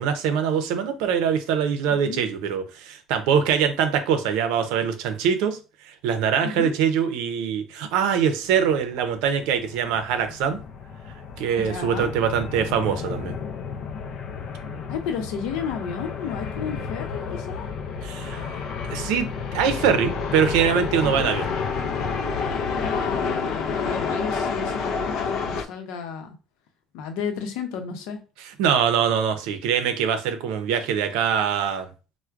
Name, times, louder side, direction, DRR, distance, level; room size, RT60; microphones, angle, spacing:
voice 1, 0.0-5.6 5.8-10.6 11.4-13.4 18.0-18.5 18.9-19.3 19.5-21.5 28.6-31.9, right 7 dB, 90° right, 0.6 m, -23 dB
voice 2, 1.9-2.2 6.4-6.7 11.6-12.1 14.9-17.7 21.0-21.3 22.8-26.4 26.9-28.2, left 6 dB, 85° left, 0.7 m, -32 dB
sound 1, 8.5-25.6, left 5 dB, 50° left, 0.4 m, -30 dB
4.4 x 2.1 x 2.4 m
cardioid pair, 180°, 0 cm